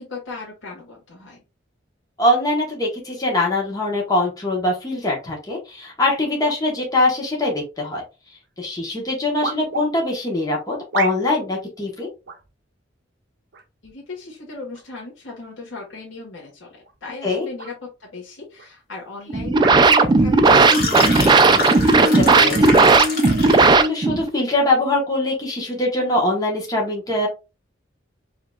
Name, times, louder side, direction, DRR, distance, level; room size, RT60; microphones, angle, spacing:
voice 1, 0.0-1.4 13.8-23.2, left 3 dB, 85° left, -3 dB, 1.6 m, -37 dB
voice 2, 2.2-8.0 8.6-12.1 17.2-17.5 22.0-22.1 22.3-22.9 23.9-27.3, left 2 dB, 20° left, -1 dB, 1.1 m, -22 dB
sound 1, 8.4-8.5 9.4-9.9 10.9-11.4 12.3-12.5 13.5-13.9 14.7-14.9 16.8-17.0 17.6-17.7 18.6-18.7 19.6-19.9 20.7-20.8, right 5 dB, 60° right, 0.8 m, -30 dB
sound 2, 19.3-24.3, right 3 dB, 25° right, 0.3 m, -15 dB
sound 3, 20.4-23.7, left 3 dB, 50° left, 1.6 m, -27 dB
4.9 x 2.8 x 2.3 m, 0.28 s
head